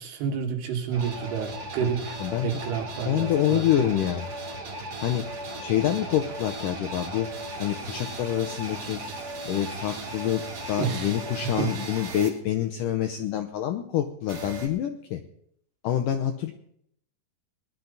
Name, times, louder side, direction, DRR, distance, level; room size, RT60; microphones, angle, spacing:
voice 1, 0.0-3.9 10.8-11.1 11.4-11.7, right 7 dB, 75° right, 4 dB, 3.7 m, -30 dB
sound 1, 0.9-12.3 14.3-14.7, right 2 dB, 35° right, 3.7 m, -37 dB
voice 2, 2.2-2.5 3.1-4.3 5.0-5.2 5.6-7.3 7.6-9.0 9.5-10.4 10.7-15.2 15.8-16.5, left 11 dB, 80° left, 6 dB, 1.9 m, -26 dB
20.0 x 12.0 x 4.0 m, 0.68 s
omnidirectional pair, 4.8 m